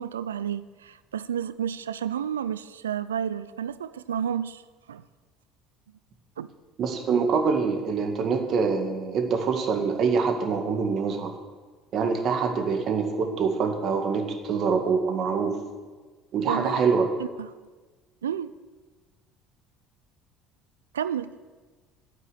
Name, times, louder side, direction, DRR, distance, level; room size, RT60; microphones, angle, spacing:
voice 1, 0.0-4.6 4.9-5.0 6.4-6.5 16.5-16.8 17.4-17.5 18.2-18.5 20.9-21.3, right 9 dB, 80° right, 0.4 m, -31 dB
voice 2, 6.8-11.3 11.9-15.6 16.3-17.1, right 5 dB, 50° right, 2.0 m, -25 dB
9.9 x 9.5 x 8.1 m
figure-of-eight pair, 60°, 0 cm